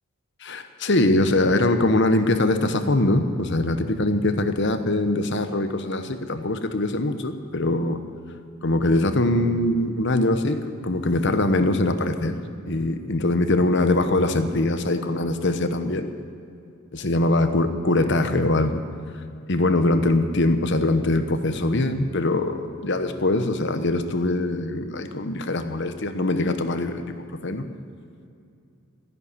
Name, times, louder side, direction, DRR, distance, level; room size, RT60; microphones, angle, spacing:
voice 1, 0.4-8.0 8.6-10.6 10.8-12.4 12.7-16.1 16.9-18.8 19.5-27.1 27.4-27.6, left 2 dB, 55° left, 8 dB, 1.0 m, -22 dB
14.5 x 11.0 x 8.4 m, 2.5 s
head